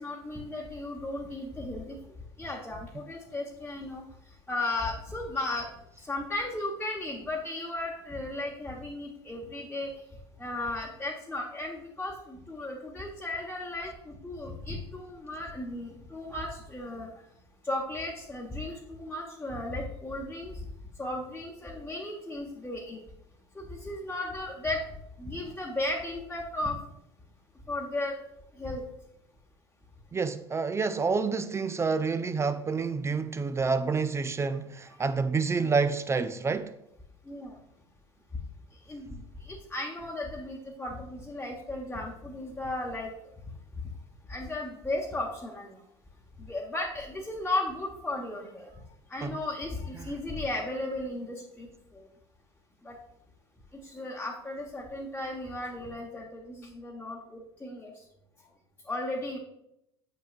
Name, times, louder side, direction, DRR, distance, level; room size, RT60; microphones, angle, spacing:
voice 1, 0.0-2.0 2.4-4.0 4.5-5.7 6.1-9.9 10.4-17.1 17.6-20.6 21.0-23.0 23.5-24.8 25.2-26.8 27.7-28.1 28.6-28.8 37.3-37.5 38.9-39.2 39.5-43.1 44.3-45.7 46.5-48.7 49.1-51.7 51.9-52.1 52.8-52.9 53.8-57.9 58.9-59.4, left 2 dB, 10° left, 1.0 m, -35 dB
voice 2, 30.1-36.8 49.2-49.4 49.9-50.1, right 4 dB, 20° right, 0.4 m, -28 dB
7.3 x 5.8 x 2.5 m
figure-of-eight pair, 70°, 14 cm